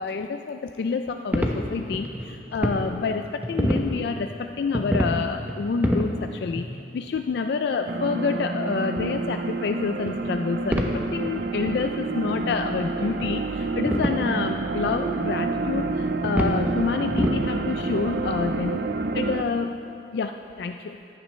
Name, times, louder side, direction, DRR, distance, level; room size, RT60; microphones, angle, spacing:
voice 1, 0.0-18.8 19.1-19.8 20.1-21.0, left 4 dB, 65° left, 6 dB, 0.3 m, -28 dB
sound 1, 1.3-2.8 3.2-3.9 4.6-5.1 5.5-6.1 6.5-6.7 7.9-8.0 9.0-9.1 10.1-10.2 10.7-11.0 11.3-11.4 11.6-11.7 12.3-12.4 13.0-13.4 13.8-14.2 14.9-15.0 15.5-15.6 16.2-16.7 17.1-17.4 17.8-17.9, equal, 10° right, 0.7 m, -26 dB
sound 2, 7.9-19.4, right 3 dB, 60° right, 0.5 m, -28 dB
14.5 x 10.5 x 3.2 m, 2.6 s
head